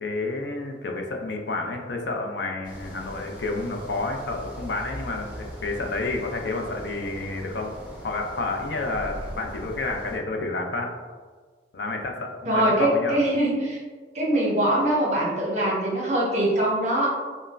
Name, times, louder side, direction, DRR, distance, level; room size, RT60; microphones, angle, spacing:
voice 1, 0.0-7.7 8.0-10.9 11.7-13.2, left 2 dB, 75° left, 2 dB, 0.5 m, -30 dB
sound 1, 2.6-10.2, equal, 25° left, 1.0 m, -40 dB
voice 2, 12.5-13.8 14.1-17.1, right 1 dB, 40° right, -4 dB, 0.9 m, -23 dB
5.3 x 2.1 x 2.5 m, 1.5 s
head